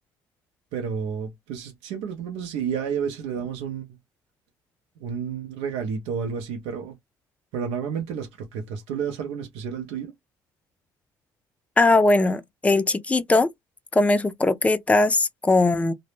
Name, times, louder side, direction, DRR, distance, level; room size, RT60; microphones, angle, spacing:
voice 1, 0.7-3.9 5.0-7.0 7.5-10.1, right 7 dB, 75° right, 0.6 m, -31 dB
voice 2, 11.8-13.5 13.9-15.9, left 2 dB, 15° left, 0.4 m, -20 dB
2.0 x 2.0 x 3.0 m
hypercardioid pair, 65°, 10 cm